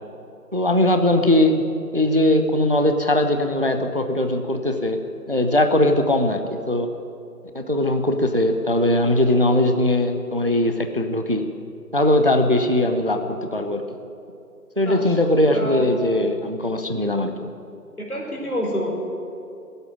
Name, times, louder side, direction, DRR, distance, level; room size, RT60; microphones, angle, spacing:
voice 1, 0.5-1.6 1.9-5.0 5.3-6.4 6.7-6.9 7.5-11.5 11.9-13.8 14.8-17.5, left 1 dB, 35° right, 7 dB, 0.6 m, -20 dB
voice 2, 14.8-15.2 15.5-15.8 18.0-18.9, equal, 65° left, -1 dB, 3.8 m, -27 dB
13.5 x 8.1 x 9.2 m, 2.6 s
figure-of-eight pair, 165°, 47 cm